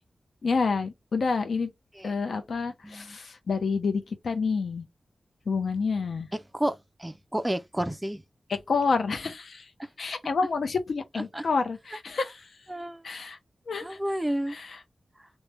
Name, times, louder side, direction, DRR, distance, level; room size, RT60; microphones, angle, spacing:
voice 1, 0.4-1.7 2.0-4.8 5.5-6.3 8.7-9.6 10.0-12.4 13.0-13.4 13.7-14.0 14.5-14.7, left 4 dB, 75° left, 0.6 m, -28 dB
voice 2, 2.8-3.2 6.3-8.2 9.8-9.9 11.3-11.5 12.7-13.0 13.8-14.6, right 1 dB, 10° right, 0.3 m, -31 dB
3.1 x 2.1 x 3.2 m
wide cardioid pair, 125°, 0 cm